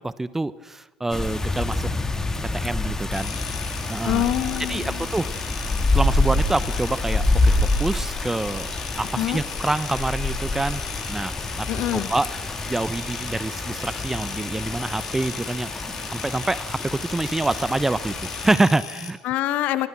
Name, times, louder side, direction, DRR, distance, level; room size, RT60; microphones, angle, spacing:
voice 1, 0.0-1.9 2.5-3.4 3.9-4.2 4.7-5.3 5.9-8.7 9.0-10.8 11.1-12.3 12.7-15.7 16.1-18.1 18.4-19.2, right 2 dB, 10° right, 17 dB, 1.0 m, -26 dB
sound 1, 1.1-18.5, left 2 dB, 15° left, 2.9 m, -27 dB
sound 2, 3.1-19.1, left 8 dB, 75° left, 2.3 m, -38 dB
voice 2, 4.0-5.1 9.1-9.4 11.7-12.1 19.2-19.9, left 14 dB, 55° left, 14 dB, 1.6 m, -25 dB
28.0 x 24.5 x 6.1 m, 1.2 s
figure-of-eight pair, 60°, 3 cm